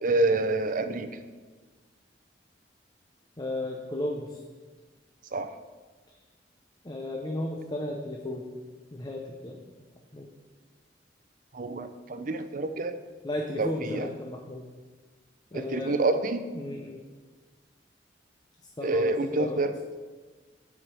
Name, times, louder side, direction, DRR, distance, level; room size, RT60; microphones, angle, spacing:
voice 1, 0.0-1.1 5.3-5.5 11.5-13.0 13.6-14.1 15.5-16.4 18.8-19.7, right 2 dB, 50° right, 9 dB, 0.7 m, -27 dB
voice 2, 3.4-4.4 6.8-8.4 8.9-9.7 10.1-10.3 13.2-14.7 15.5-16.0 16.5-17.0 18.8-19.6, left 1 dB, 25° left, 1 dB, 0.7 m, -34 dB
9.9 x 5.0 x 7.6 m, 1.4 s
head